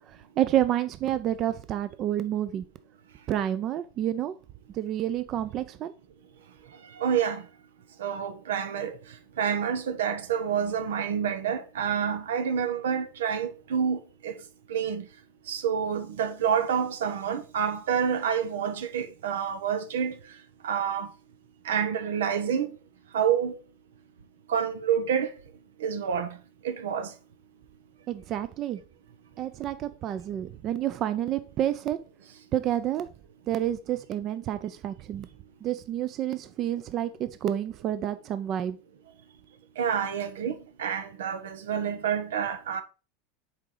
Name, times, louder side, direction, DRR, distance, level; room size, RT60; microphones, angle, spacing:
voice 1, 0.1-2.6 3.3-4.3 4.7-5.9 28.1-28.8 29.4-32.0 32.5-33.1 33.5-35.3 35.6-38.8, right 11 dB, 40° right, 0.6 m, -29 dB
voice 2, 7.0-7.4 8.0-9.0 9.4-14.3 14.7-15.0 15.5-20.2 20.6-21.1 21.6-22.7 23.1-23.5 24.5-25.3 25.8-26.4 26.6-27.1 39.8-42.8, right 8 dB, 90° right, 1.0 m, -28 dB
7.3 x 4.9 x 3.9 m
supercardioid pair, 125°, 0 cm